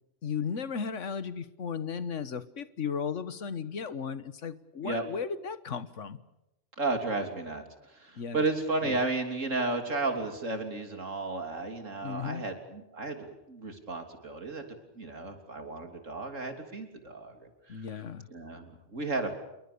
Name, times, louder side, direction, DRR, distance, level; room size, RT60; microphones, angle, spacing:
voice 1, 0.2-6.2 8.1-8.5 8.8-9.0 12.0-12.4 17.7-18.3, left 6 dB, 75° left, 14 dB, 1.6 m, -35 dB
voice 2, 6.8-14.6 15.0-17.8 18.3-19.3, right 3 dB, 80° right, 6 dB, 3.7 m, -33 dB
28.0 x 22.5 x 6.9 m, 0.90 s
omnidirectional pair, 1.3 m